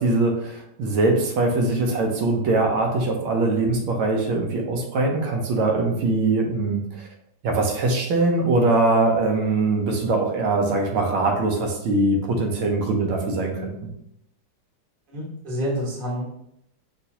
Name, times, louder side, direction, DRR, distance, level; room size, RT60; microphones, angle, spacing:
voice 1, 0.0-7.1 7.4-13.9, right 2 dB, 85° right, 1 dB, 1.6 m, -22 dB
voice 2, 15.1-16.3, equal, 30° right, -4 dB, 1.2 m, -28 dB
5.4 x 3.1 x 2.8 m, 0.76 s
omnidirectional pair, 2.2 m